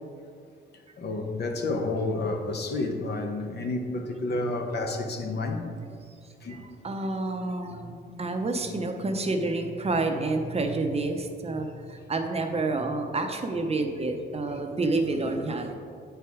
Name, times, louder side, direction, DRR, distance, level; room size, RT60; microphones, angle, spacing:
voice 1, 0.7-5.8 6.4-6.7, left 2 dB, 55° left, 1.0 m, -30 dB
voice 2, 6.8-15.7, right 2 dB, 30° right, 0.7 m, -29 dB
8.1 x 4.6 x 4.8 m
cardioid pair, 90°, 20 cm